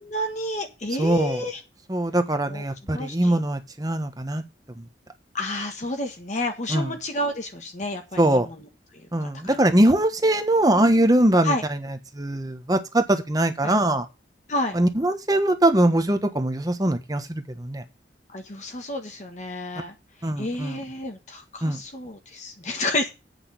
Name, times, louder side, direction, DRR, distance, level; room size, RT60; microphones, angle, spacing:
voice 1, 0.0-1.6 2.5-2.6 2.9-3.4 5.3-8.7 8.9-9.6 10.7-10.9 11.4-11.6 13.6-13.7 14.5-14.7 18.3-19.9 20.4-23.1, left 1 dB, 40° left, 4 dB, 1.5 m, -30 dB
voice 2, 1.0-1.4 1.9-4.4 4.8-4.9 6.7-6.9 8.2-8.5 9.1-11.5 12.1-14.0 14.7-17.8 20.2-20.8 21.6-21.8, right 1 dB, 20° right, 7 dB, 1.3 m, -22 dB
8.3 x 6.2 x 7.6 m, 0.27 s
head